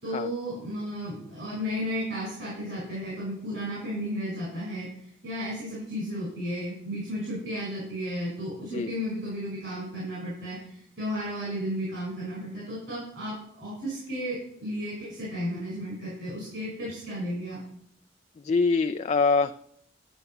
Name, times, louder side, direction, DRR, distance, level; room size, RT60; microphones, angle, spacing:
voice 1, 0.0-4.9 5.2-17.6, equal, 65° right, -7 dB, 5.6 m, -33 dB
voice 2, 18.4-19.5, left 4 dB, 35° left, 10 dB, 0.3 m, -24 dB
12.0 x 6.7 x 5.9 m, 0.69 s
head